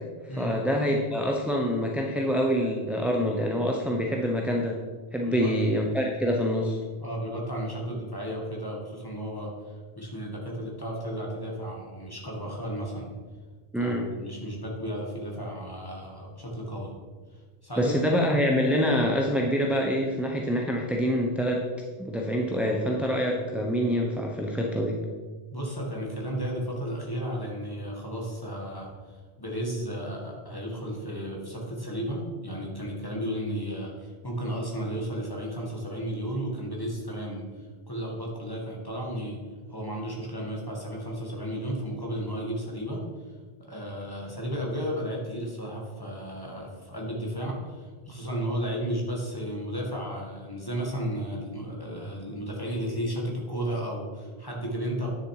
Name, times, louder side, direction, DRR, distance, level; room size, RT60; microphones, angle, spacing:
voice 1, 0.4-4.8 5.1-6.8 13.7-14.1 17.8-21.6 22.0-25.0, equal, ahead, -1 dB, 0.8 m, -26 dB
voice 2, 5.2-5.5 7.0-13.1 13.8-16.9 17.6-18.1 25.5-28.9 29.4-39.4 39.7-43.0 43.6-55.1, equal, 20° left, -2 dB, 1.9 m, -33 dB
9.9 x 6.8 x 4.9 m, 1.5 s
omnidirectional pair, 1.1 m